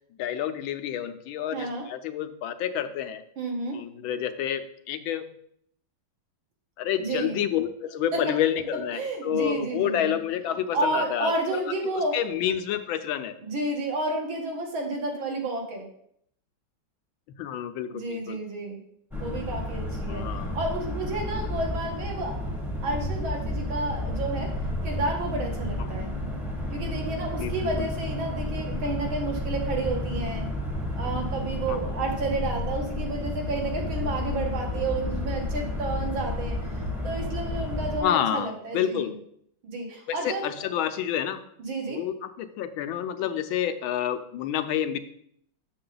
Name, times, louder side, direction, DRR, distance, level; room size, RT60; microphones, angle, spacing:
voice 1, 0.2-3.2 3.7-5.2 6.8-11.6 11.9-13.3 17.4-18.4 20.1-20.6 25.8-26.0 27.4-27.9 31.7-31.9 38.0-39.1 40.2-41.4 41.9-45.0, left 10 dB, 85° left, 9 dB, 1.5 m, -29 dB
voice 2, 1.5-1.9 3.4-3.8 7.0-7.4 8.1-8.2 8.9-10.1 10.7-12.2 13.4-15.9 17.9-18.8 19.2-22.4 22.8-24.5 24.8-26.1 26.7-30.5 31.0-39.1 39.6-40.4 41.6-42.0, right 2 dB, 85° right, 0 dB, 2.4 m, -31 dB
sound 1, 19.1-38.0, left 1 dB, ahead, 0.6 m, -31 dB
7.1 x 6.7 x 3.9 m, 0.69 s
omnidirectional pair, 2.1 m